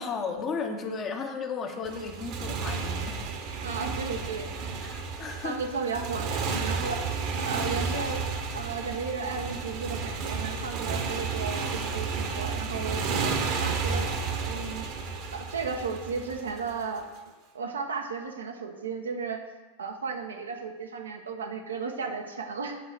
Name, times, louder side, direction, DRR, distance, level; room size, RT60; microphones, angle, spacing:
voice 1, 0.0-3.2 4.8-5.6, left 5 dB, 25° left, 4 dB, 1.1 m, -34 dB
Motorcycle, 1.8-17.0, right 5 dB, 40° right, 1.2 m, -32 dB
voice 2, 3.6-4.6 5.4-7.0 7.4-8.3 8.5-14.9 15.3-17.1 17.5-19.4 19.8-22.8, right 5 dB, 70° right, 3 dB, 1.0 m, -34 dB
8.5 x 4.9 x 6.8 m, 1.2 s
figure-of-eight pair, 90°, 0 cm